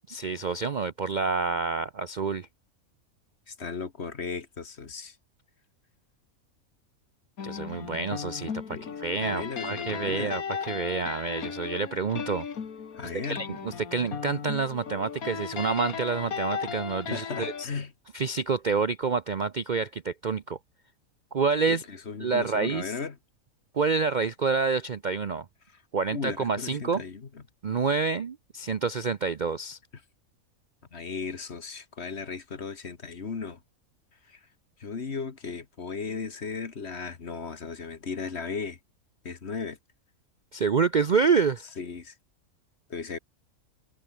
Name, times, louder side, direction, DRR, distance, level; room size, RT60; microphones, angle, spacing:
voice 1, 0.1-2.5 7.4-12.5 13.3-17.7 18.1-20.6 21.3-21.8 22.2-22.9 23.7-25.5 25.9-27.0 27.6-29.8 40.5-41.6, right 5 dB, 45° right, 0.6 m, -28 dB
voice 2, 3.5-5.2 8.7-8.9 9.2-10.4 13.0-13.5 17.1-17.9 21.7-23.2 26.1-27.3 30.9-33.6 34.3-34.4 34.8-38.8 39.3-39.8 41.8-42.1 42.9-43.2, left 5 dB, 50° left, 1.8 m, -36 dB
sound 1, 7.4-17.7, left 6 dB, 75° left, 2.1 m, -36 dB
omnidirectional pair, 1.5 m